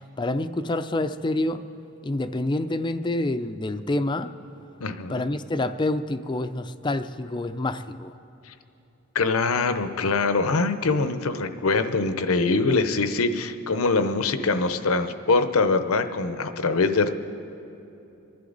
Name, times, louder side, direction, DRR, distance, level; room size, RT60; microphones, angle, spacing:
voice 1, 0.2-1.6 2.0-4.3 5.1-8.1 12.7-12.9, left 2 dB, 20° left, 10 dB, 0.4 m, -27 dB
voice 2, 4.8-5.2 9.1-17.1, left 3 dB, 85° left, 9 dB, 0.8 m, -23 dB
27.5 x 11.5 x 4.0 m, 2.9 s
head